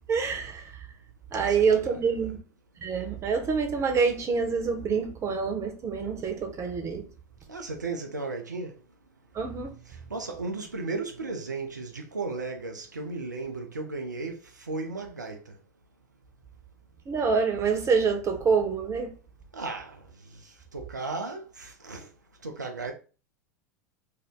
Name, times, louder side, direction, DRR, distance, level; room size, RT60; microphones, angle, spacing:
voice 1, 0.1-0.9 1.3-2.4 2.8-7.0 9.3-9.7 17.1-19.1, right 5 dB, 30° right, 0.8 m, -26 dB
voice 2, 1.4-2.3 7.5-8.8 9.9-15.5 19.5-20.0 20.7-22.1 22.4-22.9, right 3 dB, 90° right, 0.5 m, -35 dB
2.6 x 2.1 x 3.5 m
figure-of-eight pair, 80°, 9 cm